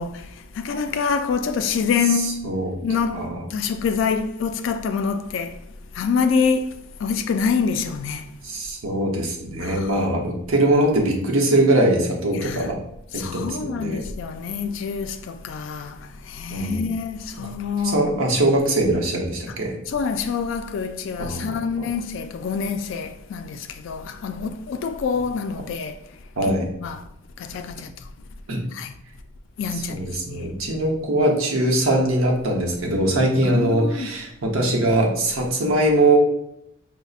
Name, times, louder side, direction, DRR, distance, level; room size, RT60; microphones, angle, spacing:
voice 1, 0.0-2.5 2.8-8.3 9.6-10.1 12.3-12.7 13.1-18.1 19.5-19.6 19.9-26.1 26.8-27.0 27.4-28.1 28.7-28.9 29.6-30.5 33.4-34.1, left 5 dB, 65° left, 0.3 m, -26 dB
voice 2, 2.4-2.8 3.1-3.4 8.4-12.8 13.1-14.0 16.5-16.9 17.8-19.7 21.2-21.8 26.4-26.7 28.5-28.6 29.7-36.2, right 1 dB, 85° right, 0.8 m, -22 dB
5.2 x 2.0 x 2.4 m
head